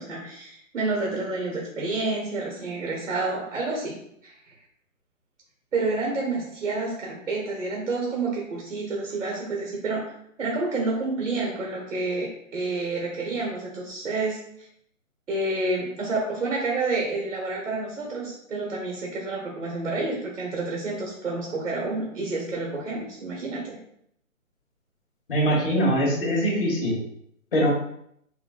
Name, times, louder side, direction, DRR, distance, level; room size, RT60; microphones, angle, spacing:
voice 1, 0.0-4.5 5.7-10.1 10.4-14.7 15.3-23.8, right 3 dB, 75° right, -2 dB, 1.4 m, -29 dB
voice 2, 25.3-27.0 27.5-27.7, equal, 45° left, -3 dB, 1.3 m, -22 dB
5.0 x 2.6 x 2.4 m, 0.71 s
hypercardioid pair, 165°, 41 cm